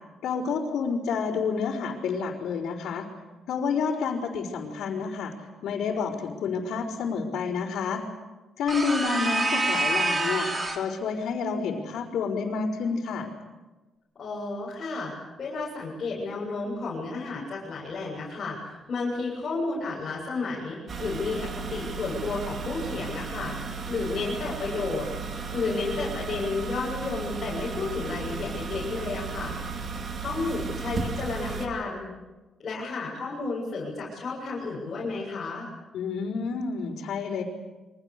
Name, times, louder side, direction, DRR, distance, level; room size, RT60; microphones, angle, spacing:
voice 1, 0.2-3.1 3.5-5.3 5.6-8.0 8.6-13.3 35.9-37.4, left 5 dB, 80° left, -7 dB, 4.7 m, -29 dB
sound 1, 8.7-10.9, right 2 dB, 25° right, 3.2 m, -26 dB
voice 2, 14.2-15.1 15.4-23.5 23.9-25.1 25.5-29.5 30.2-32.1 32.6-35.7, left 3 dB, 40° left, -6 dB, 7.4 m, -32 dB
sound 2, 20.9-31.7, right 4 dB, 45° right, 2.5 m, -35 dB
29.0 x 24.0 x 6.8 m, 1.2 s
cardioid pair, 145°, 0 cm